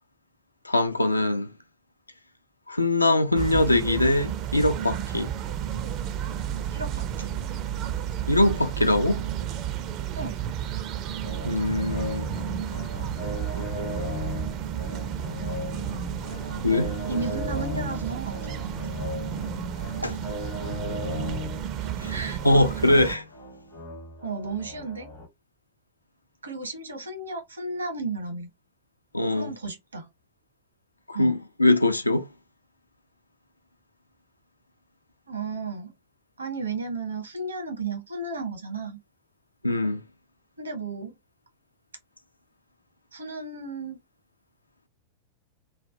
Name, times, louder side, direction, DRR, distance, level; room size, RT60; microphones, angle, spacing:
voice 1, 0.6-1.5 2.7-5.3 8.3-9.2 11.4-12.3 16.6-16.9 20.0-20.2 22.0-22.1 22.4-23.2 29.1-29.5 31.1-32.3 39.6-40.0, left 2 dB, 85° left, 0.4 m, -22 dB
sound 1, 3.4-23.2, right 10 dB, 40° right, 0.4 m, -32 dB
voice 2, 6.7-7.3 10.1-10.4 17.1-18.9 22.1-22.4 24.2-25.1 26.4-28.5 29.3-30.1 31.1-31.4 35.3-35.9 36.4-39.0 40.6-41.1 43.1-44.0, right 3 dB, 75° right, 0.9 m, -34 dB
sound 2, 11.2-25.3, left 2 dB, 60° left, 1.0 m, -37 dB
3.1 x 2.0 x 2.5 m
figure-of-eight pair, 90°, 0 cm